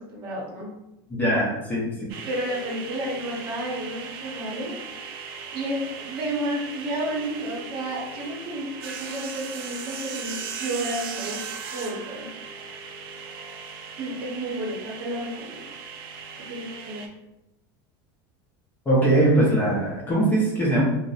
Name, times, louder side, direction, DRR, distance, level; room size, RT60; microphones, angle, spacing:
voice 1, 0.1-0.7 2.2-4.7 5.5-11.4 11.7-12.3 14.0-15.7 16.5-17.0, right 1 dB, 45° right, -2 dB, 0.8 m, -31 dB
voice 2, 1.1-2.1 18.9-20.9, right 1 dB, 15° left, -5 dB, 0.6 m, -21 dB
sound 1, 2.1-17.1, right 6 dB, 85° right, 0.4 m, -38 dB
2.5 x 2.0 x 2.4 m, 0.93 s
supercardioid pair, 140°, 12 cm